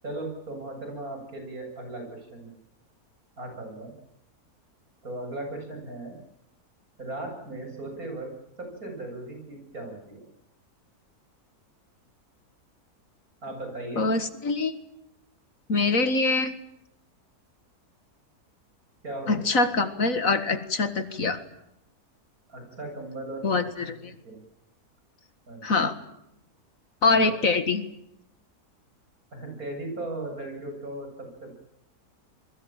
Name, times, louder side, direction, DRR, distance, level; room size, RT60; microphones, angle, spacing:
voice 1, 0.0-2.5 3.4-3.9 5.0-6.2 7.0-8.3 8.6-10.2 13.4-14.1 19.0-19.3 19.6-19.8 22.5-23.4 23.8-23.9 24.2-24.4 25.5-25.6 27.0-27.4 29.3-31.6, right 2 dB, 65° right, 4 dB, 8.6 m, -37 dB
voice 2, 14.0-14.8 15.7-16.5 19.3-21.4 23.4-24.1 25.6-25.9 27.0-27.8, left 3 dB, 60° left, 10 dB, 2.2 m, -24 dB
27.5 x 22.5 x 7.5 m, 0.80 s
omnidirectional pair, 1.6 m